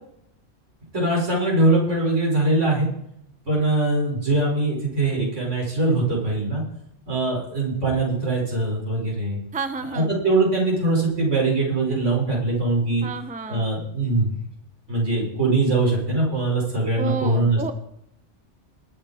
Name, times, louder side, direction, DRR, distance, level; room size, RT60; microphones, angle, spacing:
voice 1, 0.9-2.9 3.5-6.6 7.1-9.4 9.9-13.0 13.5-14.3 14.9-17.7, right 2 dB, 85° right, -2 dB, 5.6 m, -22 dB
voice 2, 9.5-10.1 13.0-13.7 17.0-17.7, right 3 dB, 10° right, 9 dB, 0.7 m, -30 dB
20.5 x 8.9 x 4.4 m, 0.76 s
omnidirectional pair, 1.2 m